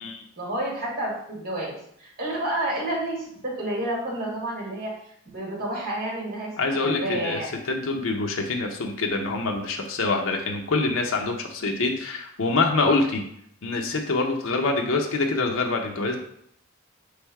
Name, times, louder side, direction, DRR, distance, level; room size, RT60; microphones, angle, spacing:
voice 1, 0.4-4.9 5.3-7.5, right 1 dB, 45° right, -3 dB, 1.6 m, -30 dB
voice 2, 6.6-7.4 7.7-13.2 13.6-16.2, left 3 dB, 80° left, 2 dB, 0.6 m, -25 dB
3.5 x 3.4 x 4.5 m, 0.69 s
head